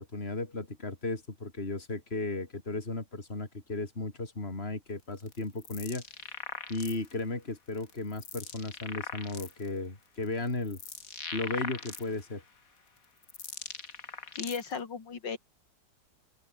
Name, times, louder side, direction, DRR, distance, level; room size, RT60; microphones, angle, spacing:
voice 1, 0.0-6.0 6.7-10.8 11.3-12.4, left 2 dB, 30° left, 4.4 m, -35 dB
sound 1, 5.2-7.2 7.8-9.7 10.2-12.4 13.0-14.8, left 5 dB, 50° left, 2.5 m, -41 dB
voice 2, 14.3-15.4, left 5 dB, 75° left, 3.1 m, -36 dB
open air
omnidirectional pair, 2.0 m